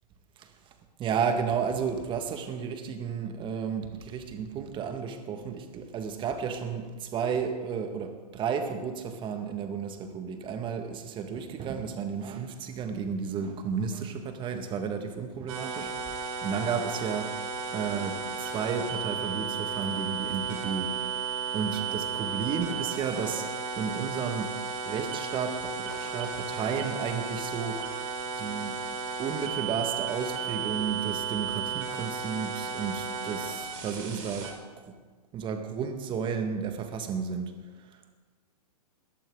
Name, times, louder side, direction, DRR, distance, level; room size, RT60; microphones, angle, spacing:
voice 1, 0.4-0.7 1.0-17.4 17.7-21.1 21.5-23.5 23.8-24.5 24.9-27.9 28.4-28.8 29.2-35.0 35.3-37.5 37.8-38.1, right 6 dB, 25° right, 6 dB, 1.7 m, -33 dB
sound 1, 15.5-34.5, right 6 dB, 55° right, 4.0 m, -34 dB
21.5 x 17.0 x 3.8 m, 1.4 s
hypercardioid pair, 120°, 21 cm